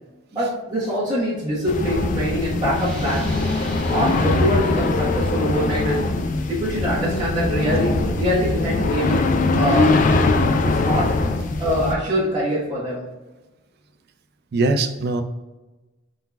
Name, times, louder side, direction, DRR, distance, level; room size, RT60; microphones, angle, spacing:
voice 1, 0.3-3.3 3.9-6.1 6.5-9.2 9.6-10.0 10.6-11.1 11.6-13.0, equal, 20° right, -11 dB, 1.2 m, -24 dB
sound 1, 1.7-12.0, left 3 dB, 40° left, 0.4 m, -21 dB
sound 2, 2.6-8.1, equal, 5° left, 1.1 m, -42 dB
sound 3, 7.4-11.3, equal, 85° left, 1.3 m, -38 dB
voice 2, 14.5-15.2, right 2 dB, 55° right, 8 dB, 0.4 m, -22 dB
5.5 x 3.9 x 2.3 m, 1.1 s
head